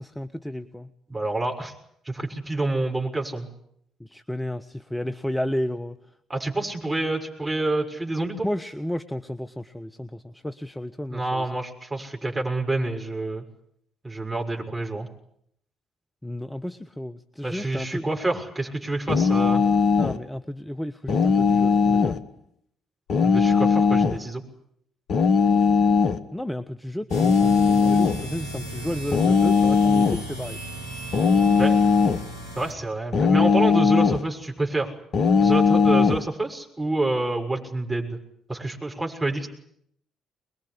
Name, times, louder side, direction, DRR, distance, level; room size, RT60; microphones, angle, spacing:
voice 1, 0.0-0.9 4.0-6.0 8.4-11.5 16.2-18.0 20.0-22.2 26.3-30.6, left 1 dB, 10° left, 9 dB, 1.2 m, -32 dB
voice 2, 1.1-1.7 2.0-3.5 6.3-8.5 11.1-13.4 14.0-15.1 17.4-19.6 23.2-24.4 31.6-31.8 32.5-34.9 35.4-38.2 38.5-39.5, right 2 dB, 20° right, 1 dB, 6.6 m, -28 dB
sound 1, 19.1-20.2 21.1-22.2 23.1-24.2 25.1-26.2 27.1-28.2 29.1-30.2 31.1-32.3 33.1-34.3 35.1-36.2, left 5 dB, 50° left, 1.2 m, -19 dB
sound 2, 27.1-32.7, right 1 dB, 80° right, 2.8 m, -36 dB
24.5 x 21.5 x 10.0 m, 0.72 s
figure-of-eight pair, 45°, 0 cm